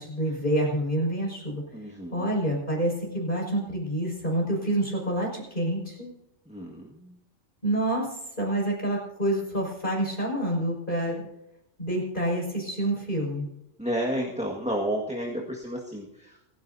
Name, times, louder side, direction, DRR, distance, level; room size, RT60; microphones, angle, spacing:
voice 1, 0.0-6.1 7.6-8.1 8.4-11.2 11.8-13.5, right 1 dB, 40° left, -2 dB, 6.0 m, -28 dB
voice 2, 1.7-2.3 6.4-7.2 13.8-16.4, equal, 5° right, -1 dB, 1.7 m, -31 dB
28.5 x 11.0 x 2.7 m, 0.85 s
omnidirectional pair, 1.3 m